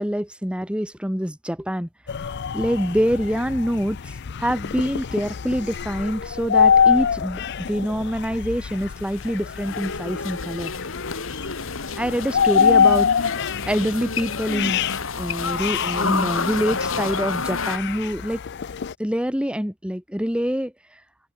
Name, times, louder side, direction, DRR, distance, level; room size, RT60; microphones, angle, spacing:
voice 1, 0.0-1.9 2.5-7.4 7.7-10.7 12.0-18.4 19.0-21.0, equal, 5° right, 2.3 m, -25 dB
sound 1, 2.1-18.9, left 7 dB, 55° left, 0.5 m, -25 dB
sound 2, 8.8-17.8, left 4 dB, 80° left, 2.8 m, -29 dB
open air
head